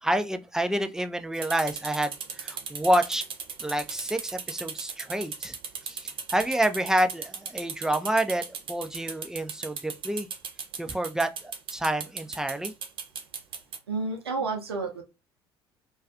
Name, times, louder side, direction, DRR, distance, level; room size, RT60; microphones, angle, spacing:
voice 1, 0.0-3.2 3.6-5.6 5.8-10.3 10.8-12.7, right 1 dB, 5° right, 0.3 m, -28 dB
sound 1, 1.3-13.8, right 6 dB, 45° right, 0.6 m, -37 dB
voice 2, 13.9-15.0, right 3 dB, 80° right, 0.6 m, -30 dB
2.3 x 2.3 x 2.4 m
figure-of-eight pair, 60°, 13 cm